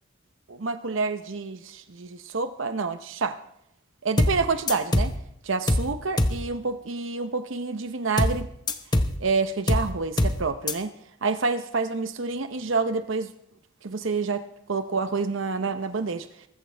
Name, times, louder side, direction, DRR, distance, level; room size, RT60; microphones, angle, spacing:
voice 1, 0.5-3.4 4.0-5.1 5.4-8.5 9.2-10.9 11.2-13.3 13.8-16.3, right 4 dB, 65° right, 10 dB, 0.8 m, -28 dB
sound 1, 4.2-4.4 4.7-5.2 5.7-5.9 6.2-6.4 8.2-8.4 8.7-9.2 9.7-9.9 10.2-10.4 10.7-10.8, left 1 dB, 20° left, 0.9 m, -22 dB
23.0 x 14.0 x 3.4 m, 0.76 s
head